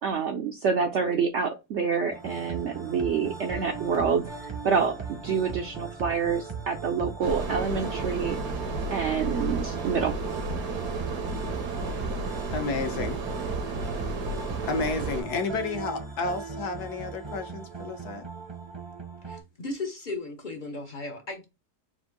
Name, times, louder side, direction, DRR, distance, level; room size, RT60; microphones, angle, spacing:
voice 1, 0.0-8.4 8.9-10.1, right 6 dB, 70° right, 0.6 m, -27 dB
sound 1, 2.1-19.4, right 4 dB, 25° right, 0.6 m, -38 dB
sound 2, 7.2-15.2, right 3 dB, 90° right, 1.7 m, -32 dB
voice 2, 12.5-13.2 14.7-18.2, left 3 dB, 75° left, 1.4 m, -31 dB
voice 3, 19.2-21.4, left 2 dB, 50° left, 0.6 m, -36 dB
4.4 x 2.6 x 3.8 m
omnidirectional pair, 1.7 m